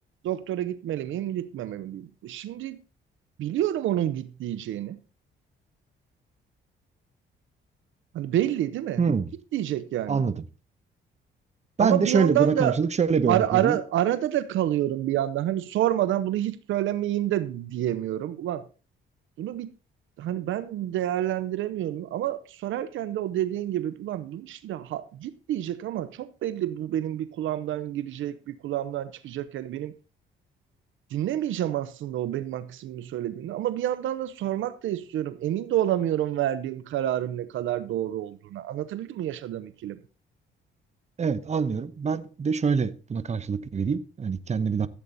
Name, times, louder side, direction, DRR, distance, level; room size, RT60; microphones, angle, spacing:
voice 1, 0.2-2.8 3.4-5.0 8.1-9.0 9.5-10.2 11.8-12.8 13.3-18.6 19.4-19.7 20.2-29.9 31.1-40.0, right 12 dB, 80° right, 0.8 m, -28 dB
voice 2, 9.0-9.3 10.1-10.4 11.8-13.8 41.2-44.9, right 5 dB, 35° right, 1.1 m, -25 dB
15.0 x 8.4 x 4.0 m
cardioid pair, 90°, 20 cm